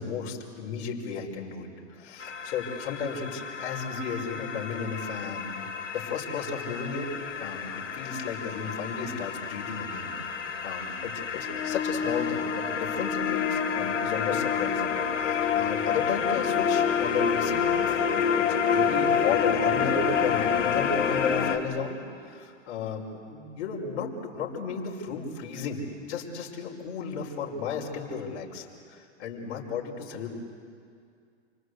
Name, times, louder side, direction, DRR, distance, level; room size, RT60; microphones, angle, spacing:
voice 1, 0.0-1.7 2.0-5.5 5.9-7.1 7.4-18.5 18.7-30.3, left 5 dB, 60° left, -1 dB, 5.6 m, -34 dB
sound 1, 2.2-21.6, left 7 dB, 85° left, 2.8 m, -28 dB
29.0 x 25.0 x 8.2 m, 2.3 s
hypercardioid pair, 130°, 37 cm